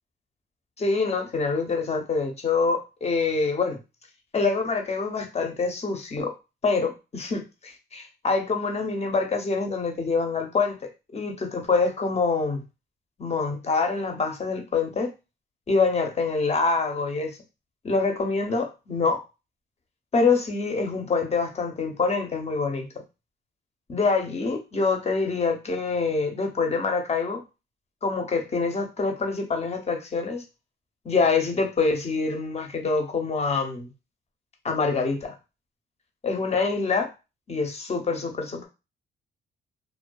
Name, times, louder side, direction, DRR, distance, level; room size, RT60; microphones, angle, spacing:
voice 1, 0.8-3.8 4.3-6.3 6.6-12.6 13.2-15.1 15.7-17.4 17.8-19.2 20.1-22.9 23.9-27.4 28.0-30.4 31.0-33.9 34.6-35.3 36.2-37.1 37.5-38.7, left 4 dB, 30° left, 4 dB, 0.7 m, -25 dB
2.5 x 2.3 x 2.3 m, 0.27 s
cardioid pair, 90°, 20 cm